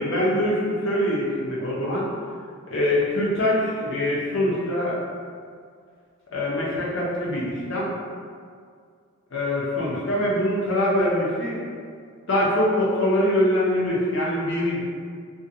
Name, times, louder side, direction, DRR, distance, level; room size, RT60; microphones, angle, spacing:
voice 1, 0.0-2.1 2.7-5.0 6.3-7.9 9.3-11.6 12.3-14.8, left 1 dB, 60° left, -6 dB, 0.6 m, -23 dB
2.5 x 2.2 x 2.6 m, 2.1 s
head